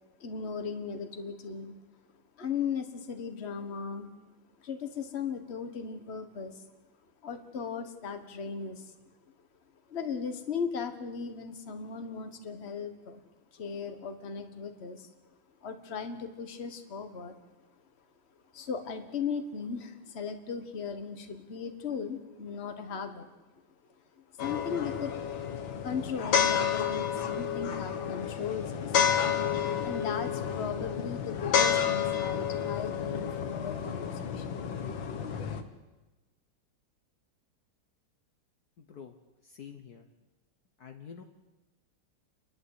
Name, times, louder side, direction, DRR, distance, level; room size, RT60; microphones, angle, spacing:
voice 1, 0.2-1.7 2.4-4.1 4.6-6.6 7.2-8.9 9.9-13.2 13.5-15.1 15.6-17.3 18.5-23.3 24.4-25.1 25.8-29.1 29.8-34.6, left 6 dB, 35° left, 7 dB, 1.6 m, -37 dB
sound 1, 24.4-35.6, left 8 dB, 85° left, 2.1 m, -30 dB
voice 2, 39.4-40.1 40.8-41.2, left 7 dB, 60° left, 5 dB, 1.5 m, -47 dB
29.5 x 11.5 x 8.2 m, 1.2 s
omnidirectional pair, 2.0 m